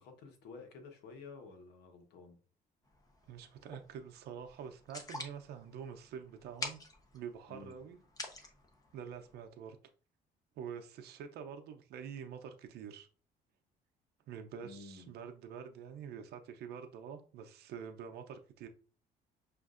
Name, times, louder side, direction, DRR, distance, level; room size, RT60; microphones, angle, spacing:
voice 1, 0.0-2.4 7.5-7.8 14.6-15.1, left 4 dB, 80° left, 1.0 m, -52 dB
sound 1, 2.8-9.5, left 2 dB, 20° left, 0.8 m, -48 dB
voice 2, 3.3-6.8 7.1-8.0 8.2-8.5 8.9-9.8 10.6-13.1 14.3-18.7, right 7 dB, 70° right, 0.6 m, -46 dB
6.2 x 2.6 x 2.4 m
cardioid pair, 110°, 17 cm